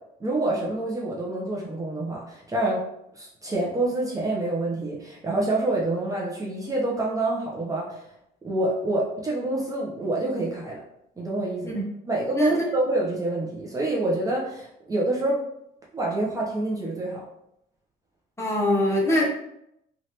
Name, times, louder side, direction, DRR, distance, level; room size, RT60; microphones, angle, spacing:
voice 1, 0.2-2.8 3.1-8.0 8.4-10.8 11.2-11.8 12.1-15.4 15.9-17.2, right 2 dB, 20° right, -3 dB, 0.7 m, -27 dB
voice 2, 18.4-19.3, left 1 dB, 15° left, -3 dB, 0.9 m, -23 dB
3.2 x 2.5 x 2.8 m, 0.78 s
cardioid pair, 110°, 17 cm